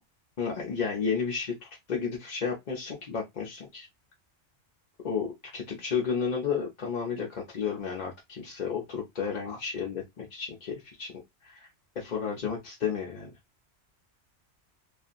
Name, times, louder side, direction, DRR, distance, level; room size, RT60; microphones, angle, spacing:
voice 1, 0.4-3.9 5.0-11.7 12.0-13.3, left 6 dB, 45° left, 0.7 m, -32 dB
2.8 x 2.5 x 2.4 m
omnidirectional pair, 1.2 m